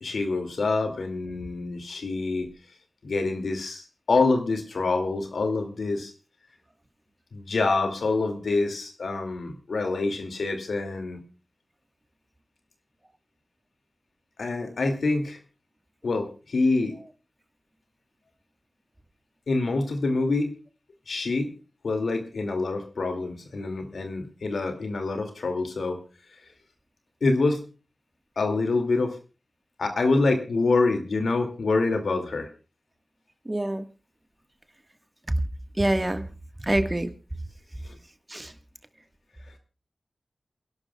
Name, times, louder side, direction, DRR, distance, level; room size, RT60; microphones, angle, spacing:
voice 1, 0.0-2.5 3.0-6.1 7.3-11.2 14.4-15.4 16.0-17.0 19.5-20.5 21.1-21.5 21.8-26.0 27.2-27.6 28.4-29.2 29.8-32.5 37.9-38.0, left 3 dB, 90° left, 6 dB, 2.3 m, -26 dB
voice 2, 33.4-33.8 35.8-36.2 36.7-37.1 38.3-38.5, right 1 dB, 25° right, 9 dB, 1.5 m, -25 dB
28.5 x 11.5 x 2.3 m, 0.32 s
wide cardioid pair, 55°, 0 cm